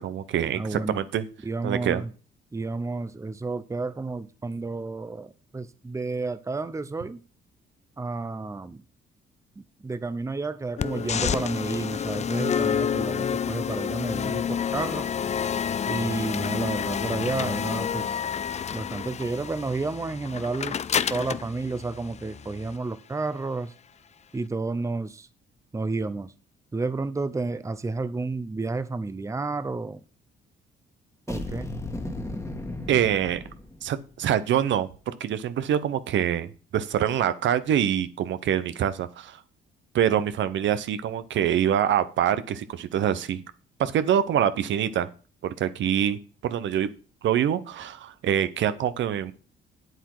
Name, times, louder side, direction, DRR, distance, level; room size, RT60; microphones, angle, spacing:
voice 1, 0.0-1.2 1.6-2.0 32.9-33.4 33.8-39.4 39.9-43.4 43.8-45.1 45.4-46.9 47.2-49.3, right 9 dB, 70° right, 13 dB, 0.9 m, -25 dB
voice 2, 0.5-1.1 1.4-2.1 2.5-7.2 8.0-8.8 9.6-15.1 15.9-18.2 18.7-20.8 21.1-23.7 24.3-25.3 25.7-26.3 26.7-30.0 31.3-31.7, right 3 dB, 15° right, 13 dB, 0.7 m, -31 dB
sound 1, 10.8-22.8, left 8 dB, 35° left, 0.5 m, -29 dB
sound 2, 31.3-34.0, left 2 dB, 15° left, 1.6 m, -35 dB
8.2 x 7.8 x 4.8 m, 0.37 s
cardioid pair, 90°, 20 cm